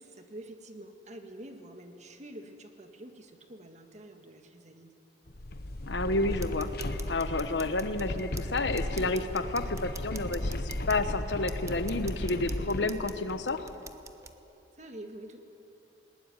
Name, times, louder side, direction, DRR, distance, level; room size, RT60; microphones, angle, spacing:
voice 1, 0.0-4.9 14.8-15.4, right 1 dB, 40° right, 6 dB, 1.8 m, -47 dB
sound 1, 5.3-13.8, left 1 dB, 60° left, 1.1 m, -36 dB
voice 2, 5.9-6.7 7.1-10.6 10.9-13.7, left 2 dB, 80° left, 10 dB, 1.3 m, -30 dB
sound 2, 6.3-14.3, right 4 dB, 15° right, 1.0 m, -48 dB
20.0 x 19.5 x 9.8 m, 2.9 s
head